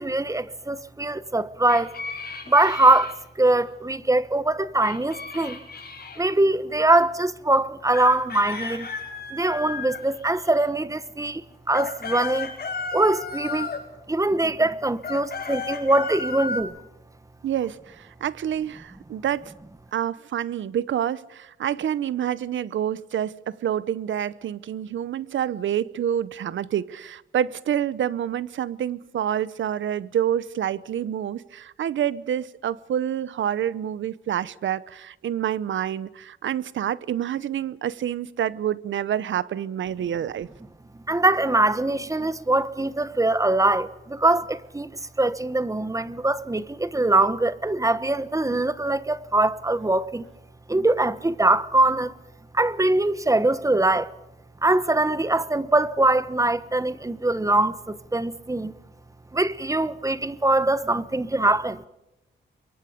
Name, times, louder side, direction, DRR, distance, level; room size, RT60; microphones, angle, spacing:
voice 1, 0.0-2.0 2.5-5.6 6.2-8.9 9.3-11.4 11.7-12.5 12.9-13.8 14.1-16.7 41.1-50.2 50.7-52.1 52.5-54.1 54.6-58.7 59.3-61.8, right 2 dB, 15° right, 1.1 m, -22 dB
sound 1, 1.7-3.1 4.8-6.2 7.9-10.6 11.5-13.9 15.0-16.6, left 4 dB, 55° left, 6.4 m, -34 dB
voice 2, 17.4-19.5 19.9-40.5, right 10 dB, 90° right, 0.8 m, -27 dB
28.0 x 23.5 x 5.2 m
cardioid pair, 90°, 19 cm